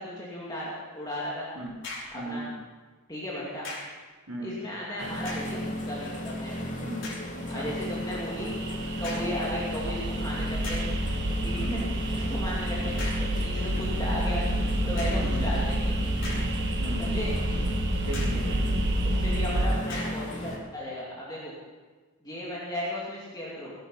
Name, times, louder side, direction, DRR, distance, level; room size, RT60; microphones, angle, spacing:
voice 1, 0.0-1.5 2.1-2.4 3.1-3.7 4.4-6.7 7.5-8.5 8.8-10.8 11.4-11.8 12.1-14.4 14.9-16.0 17.0-17.3 19.0-21.5 22.2-23.7, equal, 20° left, -6 dB, 2.6 m, -35 dB
sound 1, 1.8-2.2 3.6-4.0 5.1-5.6 6.2-6.3 7.0-7.3 9.0-9.4 10.1-10.2 10.6-11.0 13.0-13.4 15.0-15.3 16.0-16.8 17.2-17.3 18.1-18.5 19.9-20.3, left 2 dB, 55° left, 5.7 m, -40 dB
voice 2, 2.1-2.5 4.3-4.5 6.9-7.6 11.6-11.9 15.2-15.5 16.8-17.2 18.1-18.8, right 2 dB, 70° right, -7 dB, 3.2 m, -37 dB
sound 2, 5.0-20.6, equal, 35° left, 2.8 m, -35 dB
sound 3, 7.8-19.7, right 1 dB, 55° right, 1.1 m, -29 dB
19.0 x 11.0 x 5.7 m, 1.3 s
head